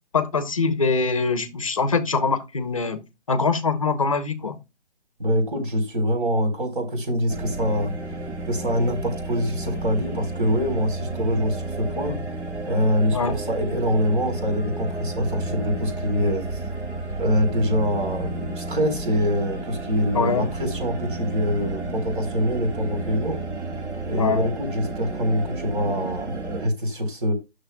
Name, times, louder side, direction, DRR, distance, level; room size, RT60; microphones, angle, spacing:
voice 1, 0.1-3.0 3.3-4.6 13.1-13.4 20.1-20.5 24.2-24.5, left 4 dB, 30° left, 0.7 m, -23 dB
voice 2, 5.2-7.9 8.5-12.2 12.7-16.6 17.1-23.4 24.0-27.3, equal, 50° right, 4.0 m, -24 dB
sound 1, 7.3-26.7, right 2 dB, 80° right, 5.2 m, -32 dB
13.0 x 6.7 x 2.2 m
hypercardioid pair, 175°, 34 cm